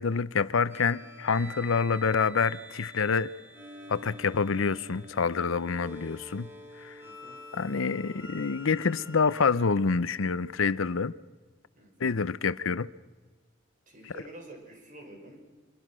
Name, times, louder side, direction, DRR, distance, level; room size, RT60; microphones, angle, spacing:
voice 1, 0.0-3.3 3.9-6.5 6.8-6.9 7.5-11.1 12.0-12.9, left 5 dB, 90° left, 0.7 m, -27 dB
sound 1, 0.7-9.5, equal, 10° right, 3.6 m, -47 dB
voice 2, 7.0-7.4 11.8-12.1 13.9-15.4, right 1 dB, 40° right, 5.8 m, -48 dB
25.0 x 23.0 x 6.2 m
head